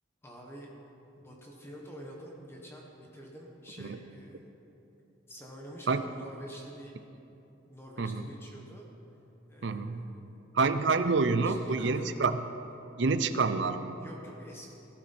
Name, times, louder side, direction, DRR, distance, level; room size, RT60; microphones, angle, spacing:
voice 1, 0.2-0.7 1.2-4.5 5.3-7.0 7.7-8.9 9.5-10.4 10.9-12.1 14.0-14.7, equal, 15° left, -2 dB, 1.5 m, -48 dB
voice 2, 9.6-10.1 10.5-12.3 13.0-14.0, right 4 dB, 65° right, 10 dB, 0.6 m, -27 dB
17.5 x 11.5 x 4.3 m, 2.9 s
head